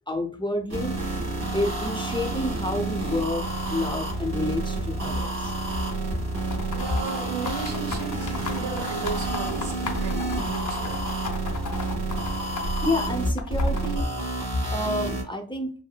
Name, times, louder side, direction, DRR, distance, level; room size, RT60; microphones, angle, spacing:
voice 1, 0.1-0.9 1.5-5.5 12.8-14.1 14.7-15.7, left 1 dB, 10° left, 3 dB, 0.7 m, -29 dB
sound 1, 0.7-15.2, right 2 dB, 40° right, 1.3 m, -29 dB
sound 2, 6.3-12.9 13.4-14.0, left 4 dB, 45° left, 0.6 m, -34 dB
voice 2, 6.7-11.3, right 5 dB, 85° right, 5 dB, 0.8 m, -35 dB
3.6 x 2.1 x 2.3 m, 0.41 s
cardioid pair, 40°, 42 cm